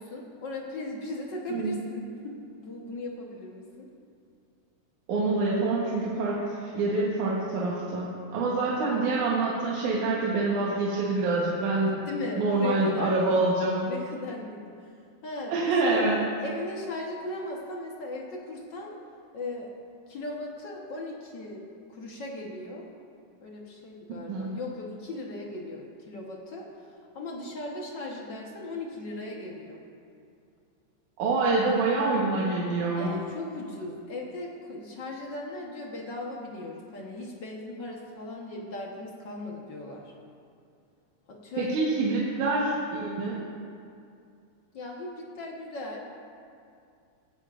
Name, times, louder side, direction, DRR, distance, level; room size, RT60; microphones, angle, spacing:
voice 1, 0.0-3.9 12.1-14.8 15.2-15.5 15.9-16.1 16.4-18.9 19.3-19.7 20.1-21.6 21.9-22.9 23.4-26.7 27.1-29.8 33.0-40.1 41.3-41.9 42.7-42.8 44.7-46.1, left 2 dB, 55° left, -1 dB, 1.2 m, -37 dB
voice 2, 5.1-12.0 12.4-13.8 15.5-16.2 24.3-24.6 31.2-33.1 41.6-43.4, right 3 dB, 75° right, -5 dB, 2.6 m, -26 dB
17.0 x 14.0 x 2.5 m, 2.4 s
omnidirectional pair, 3.5 m